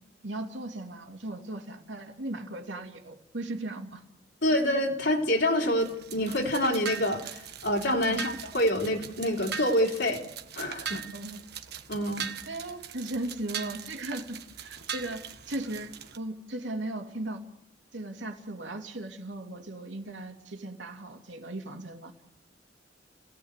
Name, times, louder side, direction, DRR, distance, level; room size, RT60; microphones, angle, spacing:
voice 1, 0.2-4.0 8.1-8.3 11.1-11.4 12.5-17.4 17.9-22.1, right 1 dB, 80° right, 3 dB, 2.7 m, -37 dB
voice 2, 4.4-10.2 10.5-11.0 11.9-12.3, left 1 dB, 65° left, -1 dB, 3.4 m, -27 dB
sound 1, 5.8-16.2, right 7 dB, 60° right, 1.4 m, -40 dB
29.5 x 18.0 x 8.2 m, 0.88 s
head